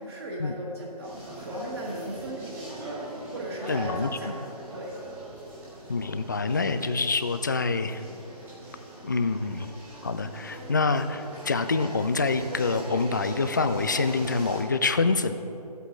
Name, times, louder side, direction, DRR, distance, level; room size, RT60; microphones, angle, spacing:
voice 1, 0.0-2.8 3.3-4.4 4.7-5.0, right 1 dB, 40° right, -4 dB, 1.6 m, -37 dB
sound 1, 1.0-14.6, right 1 dB, 10° right, 1.5 m, -41 dB
voice 2, 3.7-4.4 5.9-8.0 9.0-9.7 10.0-15.3, left 4 dB, 30° left, 10 dB, 0.4 m, -26 dB
14.5 x 8.2 x 3.8 m, 3.0 s
figure-of-eight pair, 155°, 21 cm